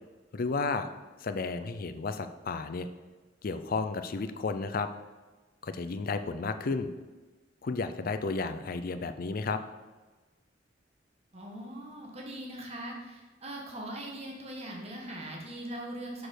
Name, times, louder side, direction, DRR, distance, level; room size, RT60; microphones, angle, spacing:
voice 1, 0.3-0.9 1.2-2.9 3.4-4.9 5.6-6.9 7.6-9.6, left 4 dB, 50° left, 9 dB, 0.5 m, -32 dB
voice 2, 11.3-16.3, right 1 dB, 35° right, -1 dB, 1.5 m, -41 dB
5.9 x 5.1 x 6.4 m, 1.2 s
head